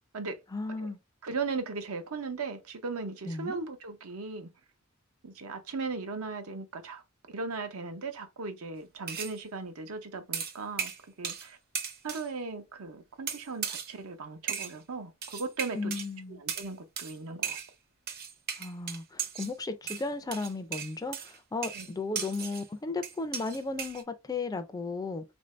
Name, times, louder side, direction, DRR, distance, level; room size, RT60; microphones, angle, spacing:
voice 1, 0.5-1.0 3.2-3.6 15.7-16.4 18.6-25.2, left 3 dB, 15° left, 0.4 m, -35 dB
voice 2, 1.2-4.5 5.2-7.0 7.3-10.9 11.2-11.6 12.0-15.9 16.3-17.6 21.7-21.9, right 4 dB, 80° right, 0.8 m, -37 dB
sound 1, 9.1-9.4 10.3-11.5 11.7-12.3 13.3-13.9 14.5-14.8 15.2-16.1 16.5-16.7 17.0-17.1 17.4-17.7 18.1-19.5 19.9-22.7 23.0-24.0, right 7 dB, 45° right, 0.7 m, -36 dB
3.6 x 2.6 x 3.1 m
head